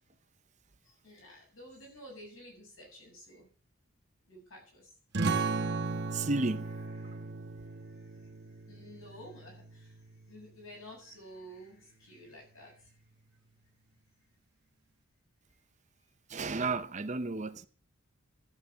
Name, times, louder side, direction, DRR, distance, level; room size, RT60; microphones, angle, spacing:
voice 1, 0.8-3.5 4.3-4.9 6.2-7.3 7.8-13.0, equal, 65° left, 7.7 m, -52 dB
sound 1, 5.1-10.3, right 4 dB, 50° right, 1.1 m, -36 dB
voice 2, 6.1-6.7 7.0-7.2 16.3-17.7, right 3 dB, 30° right, 0.6 m, -33 dB
13.0 x 8.6 x 6.1 m
head